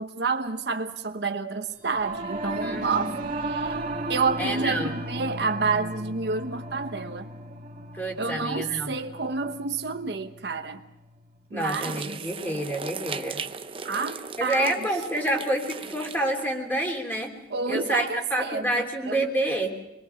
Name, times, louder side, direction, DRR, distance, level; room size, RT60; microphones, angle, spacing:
voice 1, 0.0-3.1 3.5-3.8 4.1-7.3 8.2-10.8 11.5-12.2 13.8-14.7 17.5-19.2, right 4 dB, 65° right, 1.1 m, -29 dB
Singing / Musical instrument, 1.8-11.4, right 1 dB, 45° right, 2.0 m, -35 dB
voice 2, 2.6-3.1 4.4-5.0 7.9-8.9 11.5-13.4 14.4-17.3 17.7-19.7, right 1 dB, 10° left, 3.2 m, -28 dB
sound 1, 11.6-16.6, right 5 dB, 30° right, 0.8 m, -37 dB
26.0 x 22.0 x 5.8 m
head